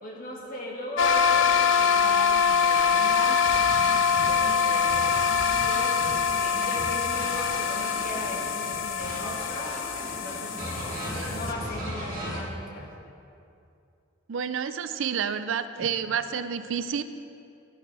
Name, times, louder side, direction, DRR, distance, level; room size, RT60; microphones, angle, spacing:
voice 1, 0.0-6.0 6.4-9.8 10.2-12.9 15.8-15.9, left 1 dB, 45° left, -3 dB, 1.9 m, -38 dB
sound 1, 1.0-11.5, left 6 dB, 70° left, 0.5 m, -24 dB
sound 2, 3.4-8.8 9.0-12.4, equal, 45° right, 2.3 m, -37 dB
voice 2, 14.3-17.0, right 7 dB, 70° right, 12 dB, 0.4 m, -29 dB
13.0 x 10.5 x 3.4 m, 2.6 s
head